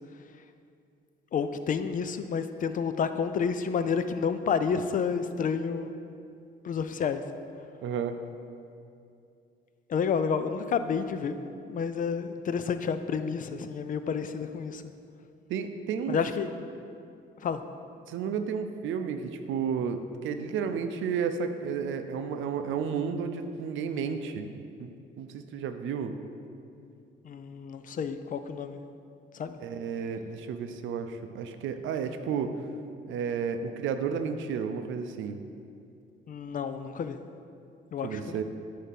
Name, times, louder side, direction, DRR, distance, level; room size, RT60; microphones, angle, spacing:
voice 1, 1.3-5.9 6.6-7.2 9.9-11.4 11.7-14.8 16.1-16.5 17.4-17.6 27.2-28.8 29.3-29.6 36.3-37.2 37.9-38.4, left 6 dB, 45° left, 10 dB, 0.4 m, -30 dB
voice 2, 7.8-8.2 15.5-16.2 18.1-24.5 24.8-24.9 25.2-26.1 29.6-32.6 33.1-35.4 38.0-38.4, right 6 dB, 75° right, 8 dB, 0.5 m, -32 dB
8.0 x 2.8 x 5.8 m, 2.5 s
cardioid pair, 90°, 20 cm